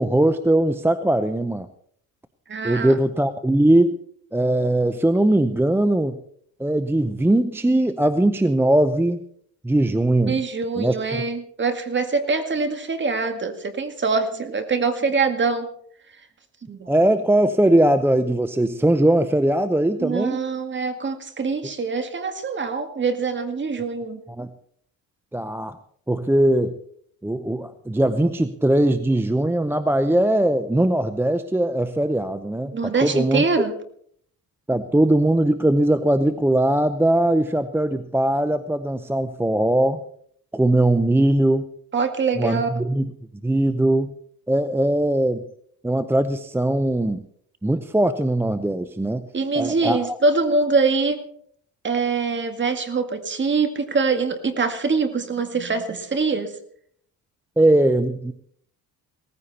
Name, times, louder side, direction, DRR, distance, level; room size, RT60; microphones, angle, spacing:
voice 1, 0.0-1.7 2.6-4.0 4.3-6.2 6.6-9.2 9.6-10.4 10.8-11.0 16.9-20.5 24.4-24.5 25.3-25.8 26.1-26.8 27.2-33.4 34.7-40.0 40.5-41.7 42.4-43.1 43.4-44.1 44.5-45.4 45.8-47.2 47.6-49.2 49.5-50.2 57.6-58.3, right 1 dB, 5° right, 11 dB, 0.6 m, -20 dB
voice 2, 2.5-3.0 10.3-15.7 16.7-16.9 20.0-24.2 32.7-33.7 41.9-42.7 49.3-51.2 51.8-56.5, right 4 dB, 30° right, 8 dB, 2.1 m, -24 dB
18.0 x 15.0 x 4.2 m, 0.63 s
cardioid pair, 115°, 35 cm